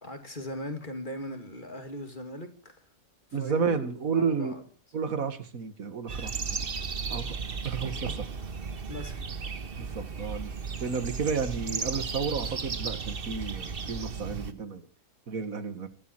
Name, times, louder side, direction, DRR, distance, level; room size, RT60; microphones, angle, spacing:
voice 1, 0.0-2.7 3.3-4.6 8.9-9.2 12.4-12.5, left 1 dB, 35° left, 6 dB, 2.7 m, -39 dB
voice 2, 3.3-4.5 4.9-6.7 7.1-7.4 7.6-8.3 9.8-10.5 10.8-14.9 15.3-15.9, right 5 dB, 90° right, 10 dB, 2.1 m, -32 dB
sound 1, 6.1-14.5, right 5 dB, 45° right, 1.4 m, -35 dB
23.0 x 11.5 x 4.7 m, 0.41 s
omnidirectional pair, 1.4 m